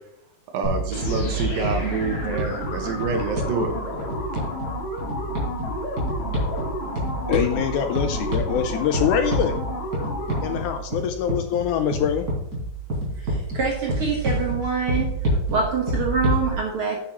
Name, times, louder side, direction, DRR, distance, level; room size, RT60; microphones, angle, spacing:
voice 1, 0.5-3.7, right 4 dB, 85° right, 4 dB, 3.1 m, -27 dB
sound 1, 0.6-16.5, right 1 dB, 25° right, 3.8 m, -28 dB
sound 2, 0.9-10.8, left 1 dB, 60° left, 3.2 m, -32 dB
voice 2, 7.3-9.6 10.4-12.3, left 9 dB, 80° left, 7 dB, 1.9 m, -24 dB
voice 3, 13.2-15.1 15.5-17.0, right 4 dB, 55° right, -1 dB, 1.7 m, -25 dB
9.3 x 8.4 x 3.0 m, 0.82 s
omnidirectional pair, 4.0 m